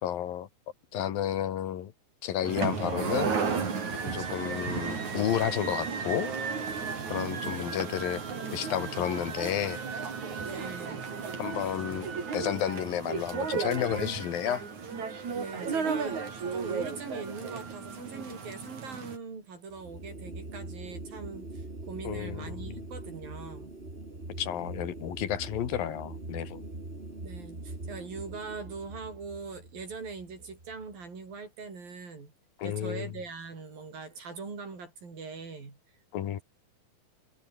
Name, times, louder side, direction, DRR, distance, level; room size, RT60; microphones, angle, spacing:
voice 1, 0.0-0.5 0.9-1.9 2.2-3.3 4.0-6.3 7.1-8.2 8.5-10.0 11.4-14.7 22.1-22.8 24.4-26.6 32.6-33.1 36.1-36.4, left 10 dB, 80° left, 3.5 m, -31 dB
sound 1, 2.4-19.2, right 5 dB, 55° right, 5.4 m, -34 dB
voice 2, 10.4-11.0 15.3-16.2 16.5-23.7 27.2-32.3 32.6-35.8 36.3-36.4, right 4 dB, 75° right, 8.2 m, -41 dB
sound 2, 19.7-31.0, right 2 dB, 15° right, 3.9 m, -42 dB
omnidirectional pair, 4.1 m